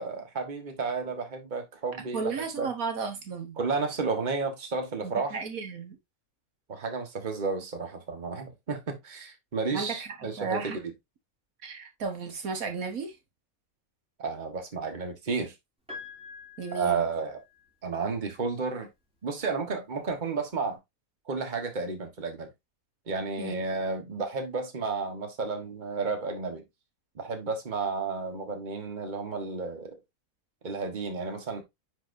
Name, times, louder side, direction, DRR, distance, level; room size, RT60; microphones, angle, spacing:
voice 1, 0.0-2.3 2.6-2.7 3.6-5.4 6.7-10.8 14.2-15.5 16.7-17.4 17.8-18.9 19.2-20.8 21.3-22.5 23.1-26.6 27.1-30.0 30.6-31.6, right 4 dB, 35° right, 1.5 m, -32 dB
voice 2, 2.1-3.6 5.0-6.0 9.7-10.8 11.6-13.2 16.6-17.1 23.4-23.6, right 4 dB, 75° right, 1.7 m, -34 dB
Piano, 15.9-17.9 19.2-19.3, left 5 dB, 5° right, 2.8 m, -46 dB
9.9 x 4.3 x 2.6 m
omnidirectional pair, 1.5 m